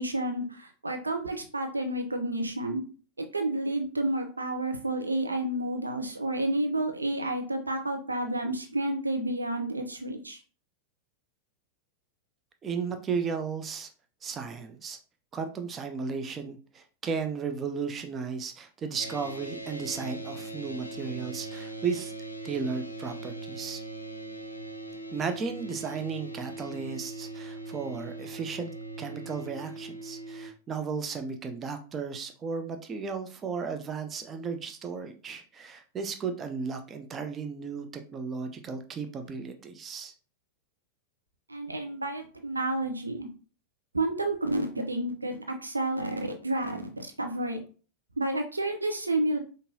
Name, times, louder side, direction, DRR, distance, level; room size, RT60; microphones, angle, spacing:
voice 1, 0.0-2.8 3.2-10.4 41.5-43.3 43.9-47.6 48.2-49.4, right 1 dB, 80° right, 4 dB, 0.6 m, -30 dB
voice 2, 12.6-13.9 14.2-15.0 15.3-22.1 22.4-23.8 25.1-28.7 29.0-40.1, right 5 dB, 25° right, 6 dB, 0.5 m, -35 dB
sound 1, 19.0-30.5, right 2 dB, 80° left, 0.5 m, -40 dB
5.3 x 2.6 x 2.7 m, 0.38 s
figure-of-eight pair, 90°, 0 cm